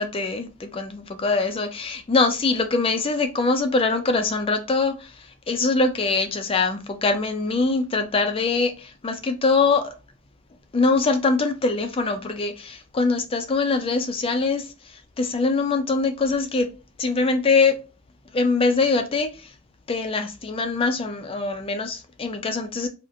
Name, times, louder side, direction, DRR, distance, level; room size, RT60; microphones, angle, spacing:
voice 1, 0.0-9.9 10.7-16.7 17.0-17.8 18.3-19.5 19.9-22.9, left 3 dB, 25° left, 0.4 m, -23 dB
4.2 x 2.4 x 2.6 m
head